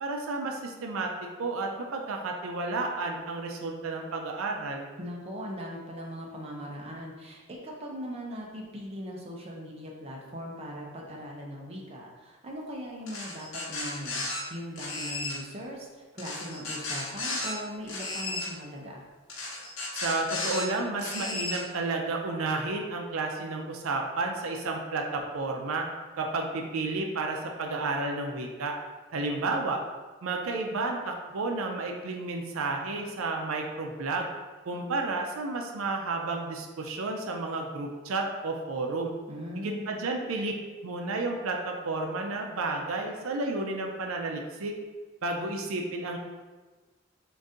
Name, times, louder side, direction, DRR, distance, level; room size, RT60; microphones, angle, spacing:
voice 1, 0.0-1.1 1.4-4.9 19.9-25.8 26.2-28.7 29.1-29.8 30.2-34.3 34.7-39.1 39.6-40.5 40.8-44.7 45.2-46.2, right 3 dB, 85° right, 2 dB, 0.5 m, -31 dB
voice 2, 5.0-19.0 39.3-39.9, equal, 30° right, -2 dB, 0.6 m, -40 dB
sound 1, 13.1-14.4 14.8-15.4 16.2-17.5 17.9-18.5 19.3-20.6 21.0-21.6, left 2 dB, 75° left, 0.9 m, -34 dB
3.8 x 2.6 x 3.7 m, 1.3 s
head